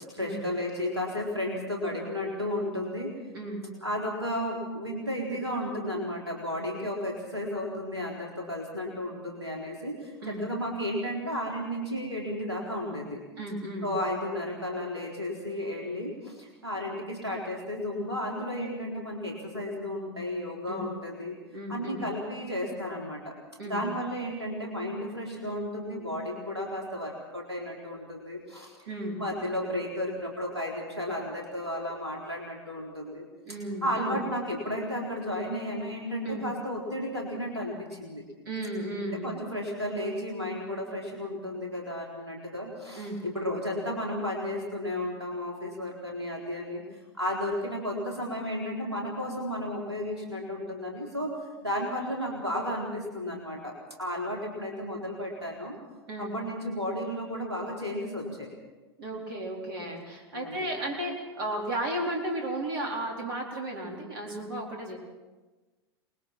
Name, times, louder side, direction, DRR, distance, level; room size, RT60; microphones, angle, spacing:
voice 1, 0.1-3.1 3.8-13.2 13.8-21.4 21.7-23.4 23.6-28.7 29.2-33.2 33.8-38.2 39.1-46.8 47.1-51.3 51.6-55.8 56.2-58.5 60.1-60.7, left 1 dB, 85° right, -2 dB, 3.9 m, -33 dB
voice 2, 13.4-13.9 20.7-20.8 21.5-22.0 23.6-23.9 28.9-29.2 33.5-34.2 36.2-36.4 38.5-39.3 42.9-43.2 56.1-56.3 59.0-65.0, right 1 dB, 60° right, 0 dB, 4.3 m, -34 dB
28.5 x 20.5 x 4.4 m, 1.2 s
figure-of-eight pair, 90°, 14 cm